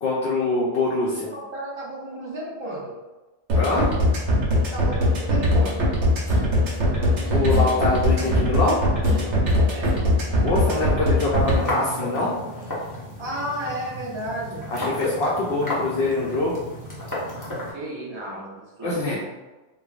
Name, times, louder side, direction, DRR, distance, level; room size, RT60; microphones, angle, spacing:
voice 1, 0.0-1.3 3.5-3.9 7.3-8.8 10.4-12.3 14.7-16.5 18.8-19.2, left 2 dB, 65° left, -5 dB, 0.8 m, -24 dB
voice 2, 1.3-3.0 4.7-5.9 9.7-10.0 13.2-14.7 17.7-19.2, right 1 dB, 30° right, -6 dB, 0.6 m, -33 dB
sound 1, 3.5-11.5, equal, 70° right, 1.0 m, -20 dB
Guitar, 6.2-12.1, left 1 dB, 50° right, 1.0 m, -38 dB
sound 2, 11.4-17.7, left 1 dB, 20° left, 0.5 m, -32 dB
3.3 x 2.1 x 2.3 m, 1.1 s
omnidirectional pair, 1.2 m